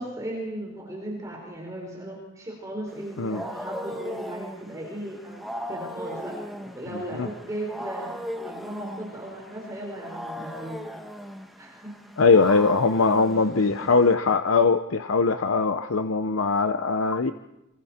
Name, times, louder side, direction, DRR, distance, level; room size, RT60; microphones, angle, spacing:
voice 1, 0.0-8.2 8.4-10.8 11.6-12.0 13.0-13.7, right 1 dB, 15° right, -1 dB, 4.6 m, -37 dB
Wild animals, 2.9-14.1, equal, ahead, 1.5 m, -38 dB
voice 2, 6.9-7.3 12.2-17.3, left 4 dB, 90° left, 8 dB, 0.8 m, -21 dB
27.0 x 25.0 x 4.4 m, 0.94 s
head